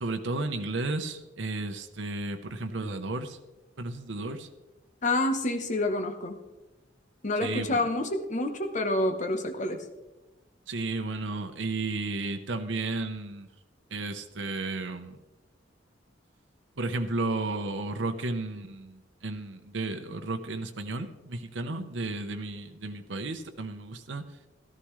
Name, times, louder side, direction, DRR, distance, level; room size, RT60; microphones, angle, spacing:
voice 1, 0.0-3.4 3.8-4.5 7.4-7.8 10.7-13.5 13.9-15.2 16.8-24.3, right 2 dB, 75° right, 6 dB, 0.9 m, -33 dB
voice 2, 5.0-6.4 7.2-9.8, left 2 dB, 40° left, 6 dB, 1.1 m, -28 dB
13.5 x 13.0 x 3.2 m, 1.1 s
head